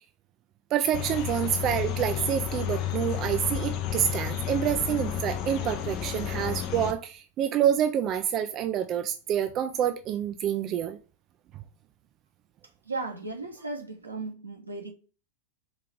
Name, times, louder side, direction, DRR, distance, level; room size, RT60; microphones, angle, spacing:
voice 1, 0.7-11.0, right 9 dB, 35° right, 0.4 m, -27 dB
sound 1, 0.9-6.9, left 10 dB, 40° left, 0.6 m, -32 dB
voice 2, 12.8-14.9, right 3 dB, 80° right, 1.1 m, -36 dB
4.8 x 2.8 x 3.4 m
figure-of-eight pair, 90°, 0 cm